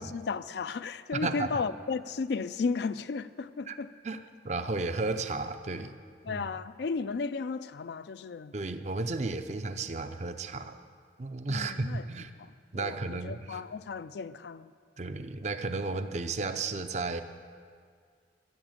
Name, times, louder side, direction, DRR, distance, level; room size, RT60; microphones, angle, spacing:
voice 1, 0.0-3.9 6.3-8.5 11.5-12.0 12.8-14.7, left 4 dB, 60° left, 0.4 m, -34 dB
voice 2, 1.1-1.5 3.7-3.8 4.0-6.0 6.3-6.5 8.5-10.8 11.2-12.3 12.7-13.6 15.0-17.2, right 3 dB, 35° right, 0.5 m, -33 dB
15.0 x 7.0 x 7.5 m
head